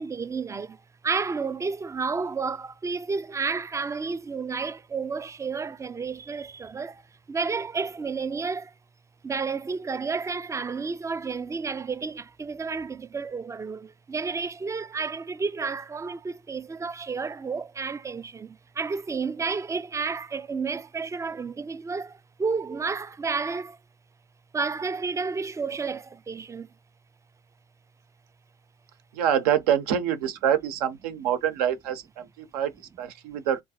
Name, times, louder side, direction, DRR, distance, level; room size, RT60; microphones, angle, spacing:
voice 1, 0.0-8.7 9.2-23.8 24.5-26.7, right 4 dB, 15° right, 0.3 m, -31 dB
voice 2, 29.1-33.6, right 9 dB, 80° right, 0.7 m, -26 dB
3.8 x 2.4 x 2.7 m
hypercardioid pair, 60°, 19 cm